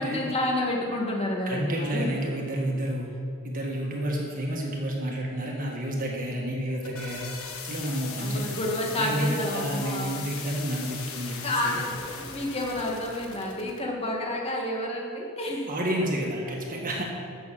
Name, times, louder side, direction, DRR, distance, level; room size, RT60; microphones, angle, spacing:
voice 1, 0.0-2.1 8.2-10.2 11.4-15.7, left 1 dB, 30° left, -1 dB, 2.0 m, -30 dB
voice 2, 1.5-3.1 3.4-7.3 7.6-8.6 9.0-11.8 15.7-17.0, right 1 dB, 40° right, -1 dB, 1.5 m, -30 dB
sound 1, 6.5-13.8, left 5 dB, 70° left, 1.5 m, -39 dB
13.0 x 6.3 x 7.4 m, 2.6 s
head